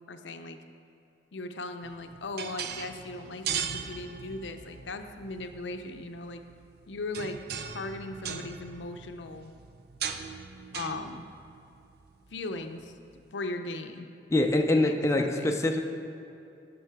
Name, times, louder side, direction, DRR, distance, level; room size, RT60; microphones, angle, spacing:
voice 1, 0.1-0.6 1.3-6.4 6.9-7.4 7.7-9.5 10.7-11.2 12.3-12.9 13.3-14.1 14.7-15.6, left 2 dB, 75° left, 7 dB, 0.5 m, -38 dB
sound 1, 1.8-13.2, right 7 dB, 60° right, 0.5 m, -40 dB
voice 2, 14.3-15.8, left 1 dB, 15° left, 2 dB, 0.5 m, -24 dB
12.0 x 5.3 x 4.7 m, 2.7 s
head